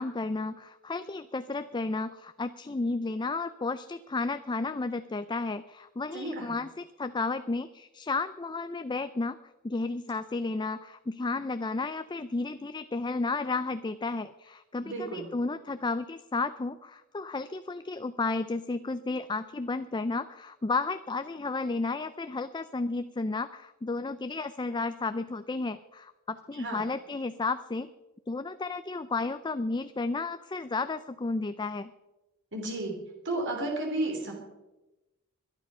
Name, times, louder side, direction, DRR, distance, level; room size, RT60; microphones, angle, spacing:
voice 1, 0.0-9.4 9.6-27.9 28.3-31.9, left 3 dB, 20° left, 11 dB, 0.4 m, -32 dB
voice 2, 6.1-6.6 14.8-15.3 26.5-26.8 32.5-33.0 33.2-34.3, right 2 dB, 55° right, 1 dB, 3.2 m, -32 dB
21.5 x 11.5 x 5.6 m, 1.0 s
head